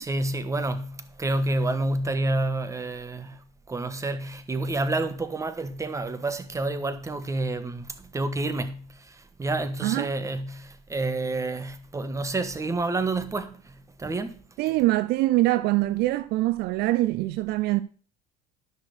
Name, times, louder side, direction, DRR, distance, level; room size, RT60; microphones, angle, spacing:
voice 1, 0.0-14.4, right 2 dB, 15° right, 1.3 m, -29 dB
voice 2, 14.6-17.8, right 17 dB, 65° right, 0.6 m, -24 dB
10.5 x 6.3 x 6.6 m
supercardioid pair, 95°, 18 cm